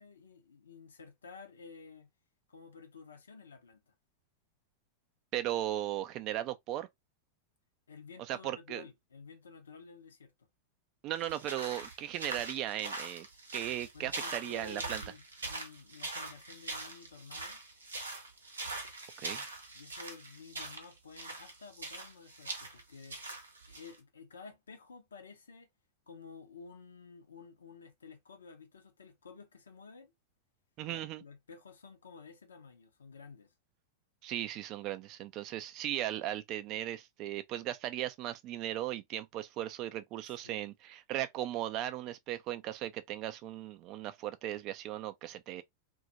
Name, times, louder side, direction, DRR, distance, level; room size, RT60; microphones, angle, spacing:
voice 1, 0.0-2.1 2.5-3.9 7.9-10.3 13.9-17.6 19.7-23.2 23.7-25.7 26.1-30.1 30.9-33.5 40.2-40.6, left 4 dB, 70° left, 0.5 m, -52 dB
voice 2, 5.3-6.9 8.3-8.8 11.0-13.3 13.5-15.0 19.2-19.5 30.8-31.2 34.2-45.6, right 13 dB, 40° right, 0.3 m, -37 dB
sound 1, 11.2-24.0, right 3 dB, 75° right, 0.6 m, -42 dB
2.2 x 2.1 x 2.7 m
figure-of-eight pair, 90°, 0 cm